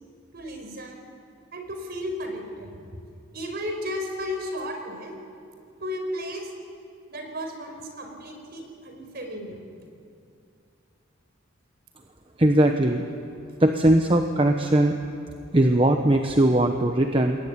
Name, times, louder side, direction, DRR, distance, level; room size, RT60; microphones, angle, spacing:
voice 1, 0.3-1.1 1.5-3.0 3.3-5.1 5.8-6.5 7.1-9.6, equal, 50° right, 4 dB, 4.9 m, -34 dB
voice 2, 12.4-13.0 13.6-14.9 15.5-17.4, right 1 dB, 25° right, 5 dB, 1.1 m, -20 dB
27.0 x 21.0 x 9.9 m, 2.5 s
head